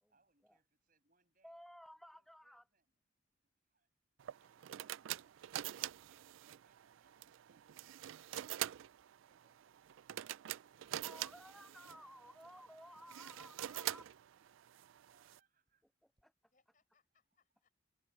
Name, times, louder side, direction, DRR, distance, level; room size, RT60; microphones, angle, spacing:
voice 1, 0.1-1.6 2.1-2.9 3.4-3.9 4.4-4.9 6.1-9.0 11.5-11.8 14.6-15.8, right 3 dB, 45° right, 7.3 m, -80 dB
voice 2, 1.4-2.6 11.0-14.0 15.8-16.5, equal, ahead, 0.4 m, -56 dB
sound 1, 4.2-15.4, right 12 dB, 75° right, 0.4 m, -46 dB
voice 3, 4.4-5.3 16.5-17.7, left 4 dB, 40° left, 6.9 m, -81 dB
Coin (dropping), 10.6-12.5 12.8-13.0 13.4-13.6 13.9-14.7 15.3-15.8 16.1-16.2, right 6 dB, 20° right, 6.9 m, -83 dB
head